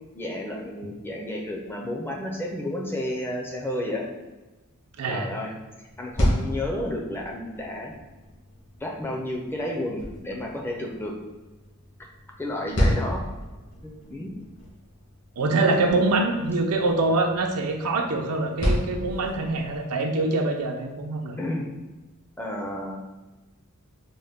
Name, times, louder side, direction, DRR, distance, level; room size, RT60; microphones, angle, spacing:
voice 1, 0.1-4.1 5.1-7.9 8.8-11.2 12.4-13.2 13.8-14.3 21.4-21.7 22.4-23.0, left 1 dB, 10° left, -1 dB, 0.4 m, -31 dB
voice 2, 5.0-5.3 15.4-21.4, right 2 dB, 80° right, 3 dB, 0.5 m, -24 dB
sound 1, 5.9-19.8, equal, 55° left, 1.1 m, -32 dB
4.0 x 2.1 x 3.5 m, 1.1 s
head